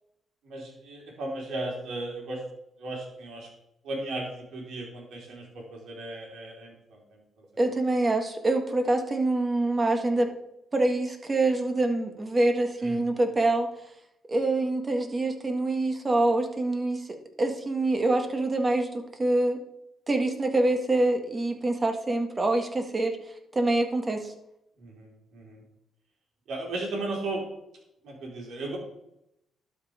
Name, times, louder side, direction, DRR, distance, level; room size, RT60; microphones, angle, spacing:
voice 1, 0.4-2.4 2.8-3.5 3.8-6.7 12.8-13.0 24.8-25.6 26.5-27.4 28.0-28.8, right 2 dB, 75° right, -1 dB, 3.9 m, -35 dB
voice 2, 7.6-10.3 10.7-13.7 14.3-17.1 17.4-19.6 20.1-23.2 23.5-24.3, right 2 dB, 25° right, 5 dB, 1.7 m, -25 dB
12.0 x 5.5 x 5.0 m, 0.80 s
cardioid pair, 90°, 0 cm